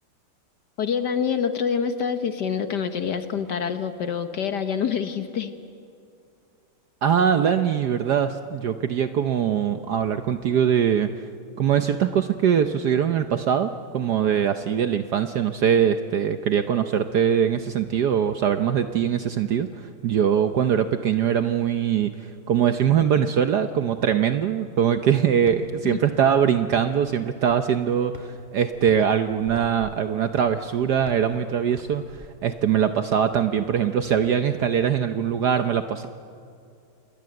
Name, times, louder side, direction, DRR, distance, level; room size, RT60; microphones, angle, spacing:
voice 1, 0.8-5.5 25.8-26.0, left 7 dB, 55° left, 9 dB, 1.5 m, -26 dB
voice 2, 7.0-11.1 11.6-36.1, right 8 dB, 65° right, 9 dB, 1.1 m, -22 dB
sound 1, 25.5-32.3, equal, 10° right, 2.1 m, -48 dB
27.5 x 20.5 x 7.8 m, 2.5 s
omnidirectional pair, 2.4 m